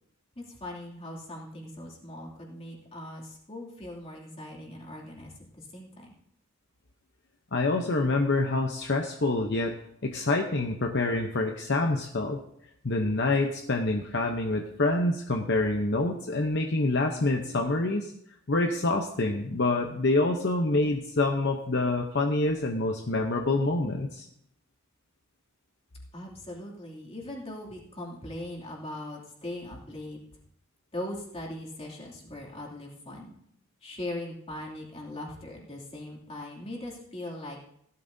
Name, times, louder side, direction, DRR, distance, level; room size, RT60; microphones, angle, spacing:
voice 1, 0.4-6.1 26.1-30.2 30.9-33.3 33.8-37.6, left 1 dB, 30° left, -2 dB, 2.7 m, -40 dB
voice 2, 7.5-9.7 10.0-12.4 12.8-18.1 18.5-24.3, left 2 dB, 55° left, 3 dB, 0.8 m, -26 dB
16.5 x 12.5 x 2.7 m, 0.73 s
head